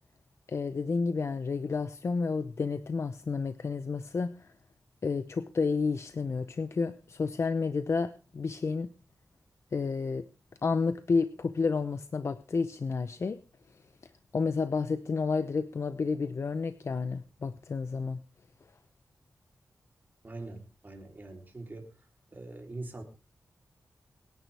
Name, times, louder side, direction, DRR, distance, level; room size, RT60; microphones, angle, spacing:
voice 1, 0.5-4.5 5.0-8.9 9.7-10.2 10.6-13.4 14.3-18.2, left 4 dB, 55° left, 11 dB, 0.7 m, -30 dB
voice 2, 20.2-21.9 22.3-23.0, right 2 dB, 35° right, 2 dB, 3.5 m, -43 dB
24.0 x 11.0 x 3.4 m, 0.33 s
wide cardioid pair, 135°, 6 cm